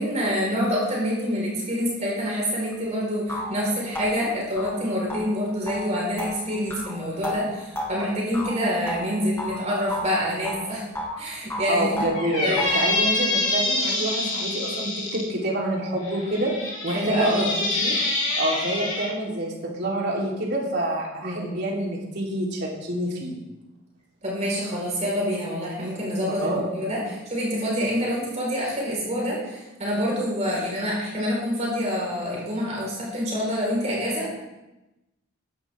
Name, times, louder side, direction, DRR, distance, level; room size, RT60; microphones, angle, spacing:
voice 1, 0.0-10.8 11.2-12.1 12.4-12.9 16.9-17.5 21.2-21.6 24.2-34.3, equal, 35° right, -4 dB, 4.5 m, -26 dB
sound 1, 2.7-2.8 3.3-9.6 9.9-11.2 11.5-12.9, equal, 10° left, 2.0 m, -33 dB
voice 2, 11.7-16.5 16.8-17.5 17.8-18.0 18.4-23.4 26.3-26.6, right 1 dB, 55° right, -3 dB, 3.6 m, -27 dB
Squeak, 12.1-15.2 16.0-19.1, left 2 dB, 35° left, 3.1 m, -26 dB
16.5 x 12.0 x 3.6 m, 1.0 s
head